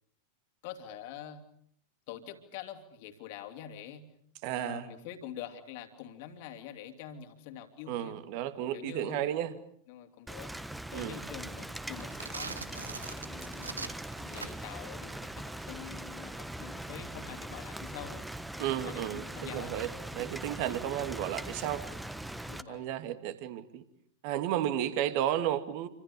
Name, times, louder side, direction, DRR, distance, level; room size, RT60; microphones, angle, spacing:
voice 1, 0.6-1.4 2.1-4.1 4.6-8.2 8.7-9.3 9.9-10.5 10.9-13.8 14.2-18.2 18.8-19.8 22.5-22.9 24.9-25.1, left 10 dB, 50° left, 6 dB, 3.1 m, -46 dB
voice 2, 4.4-4.9 7.9-9.5 10.9-11.2 18.6-21.8 22.7-23.8 24.2-25.9, right 11 dB, 45° right, 10 dB, 2.4 m, -33 dB
Rain, 10.3-22.6, right 1 dB, 5° right, 1.3 m, -41 dB
sound 1, 11.9-14.8, right 4 dB, 75° right, 1.2 m, -42 dB
28.5 x 26.0 x 7.0 m, 0.65 s
figure-of-eight pair, 90°, 0 cm